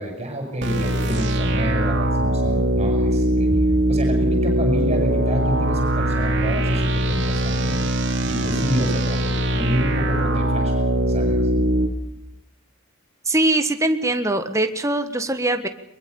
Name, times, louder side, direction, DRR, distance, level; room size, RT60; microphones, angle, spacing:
voice 1, 0.0-7.8 8.3-10.7 11.1-11.6, right 1 dB, 30° right, 3 dB, 7.8 m, -28 dB
sound 1, 0.6-11.9, right 1 dB, 55° right, 3.2 m, -21 dB
voice 2, 13.3-15.7, right 2 dB, 15° right, 7 dB, 1.5 m, -21 dB
22.5 x 22.5 x 7.0 m, 0.77 s
head